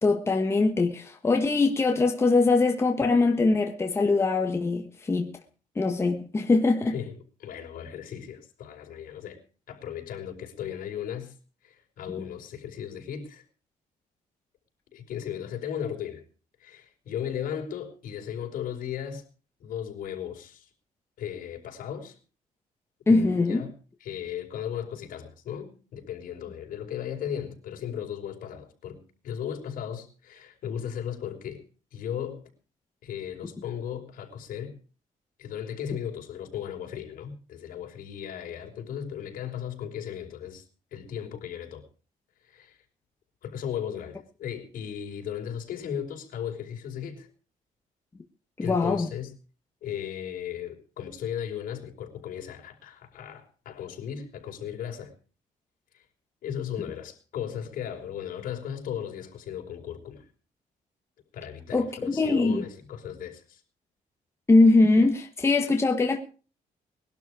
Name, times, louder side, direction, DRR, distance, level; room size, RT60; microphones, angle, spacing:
voice 1, 0.0-5.3 5.7-7.0 23.1-23.6 48.6-49.1 61.7-62.6 64.5-66.2, left 3 dB, 15° left, 1.5 m, -22 dB
voice 2, 6.8-9.4 9.7-11.3 11.6-13.4 14.9-16.2 16.6-19.2 19.6-20.7 21.2-22.2 23.1-23.7 24.0-31.6 31.9-32.4 33.0-34.8 35.4-40.7 40.9-41.8 42.4-42.8 43.4-47.3 48.6-49.3 49.8-55.1 55.9-56.0 56.4-60.3 61.3-63.6, left 9 dB, 70° left, 5.3 m, -36 dB
21.0 x 12.0 x 5.0 m
cardioid pair, 165°, 15 cm